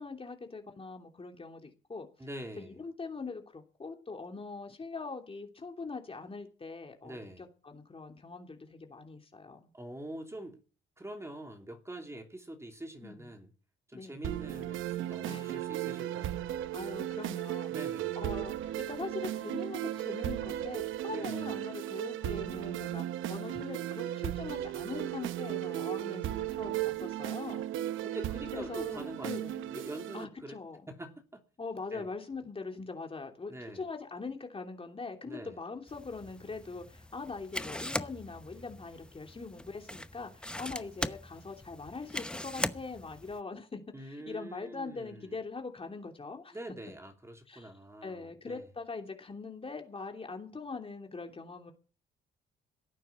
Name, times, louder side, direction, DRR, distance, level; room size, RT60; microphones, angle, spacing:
voice 1, 0.0-2.1 2.6-9.7 13.0-13.3 13.9-14.2 15.3-15.6 16.7-17.7 18.2-27.6 28.5-29.7 30.1-30.8 31.6-46.6 47.5-47.7 48.0-51.7, left 4 dB, 30° left, 3.0 m, -42 dB
voice 2, 2.2-2.8 7.0-7.4 9.7-10.6 11.0-13.5 13.9-16.5 17.7-18.2 21.1-21.5 28.0-30.6 30.9-31.4 31.9-32.1 33.5-33.9 35.2-35.6 43.9-45.3 46.5-48.6, right 1 dB, 15° right, 3.1 m, -45 dB
sound 1, 14.2-30.2, right 13 dB, 85° right, 0.8 m, -36 dB
sound 2, 35.9-43.4, left 1 dB, 5° left, 0.9 m, -40 dB
17.0 x 9.2 x 7.2 m
cardioid pair, 90°, 20 cm